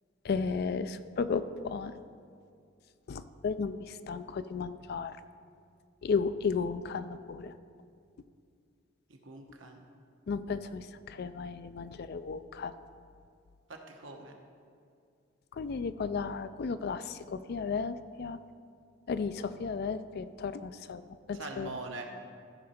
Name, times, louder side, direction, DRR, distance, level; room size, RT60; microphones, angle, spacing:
voice 1, 0.2-1.9 3.1-5.2 6.0-7.5 10.3-12.7 15.5-18.4 19.1-21.0 21.3-21.8, left 5 dB, 50° left, 13 dB, 0.3 m, -34 dB
voice 2, 9.1-9.8 13.7-14.3 21.3-22.1, right 3 dB, 70° right, 2 dB, 1.1 m, -43 dB
14.0 x 5.3 x 4.3 m, 2.3 s
head